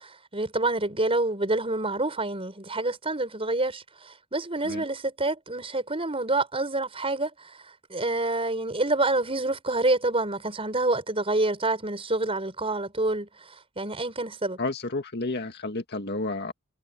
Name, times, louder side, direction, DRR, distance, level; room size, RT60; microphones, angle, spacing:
voice 1, 0.0-7.5 7.9-13.3 13.8-14.6, right 2 dB, 25° right, 6.2 m, -27 dB
voice 2, 14.6-16.5, left 2 dB, 50° left, 2.0 m, -31 dB
head